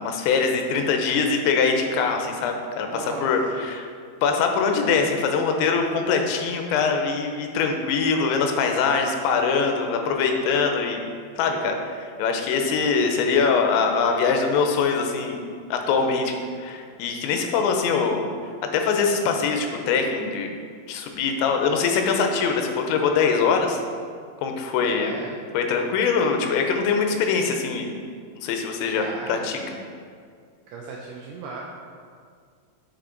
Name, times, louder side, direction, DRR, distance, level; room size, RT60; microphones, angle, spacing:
voice 1, 0.0-3.9 4.2-11.0 11.4-15.5 15.7-18.2 18.7-20.5 20.9-23.8 24.4-25.1 25.5-27.9 28.4-29.6, left 5 dB, 85° left, 4 dB, 3.1 m, -23 dB
voice 2, 2.9-3.6 24.9-25.4 28.9-29.5 30.7-31.6, right 3 dB, 85° right, -2 dB, 2.2 m, -36 dB
8.2 x 5.6 x 3.9 m, 2.1 s
omnidirectional pair, 5.1 m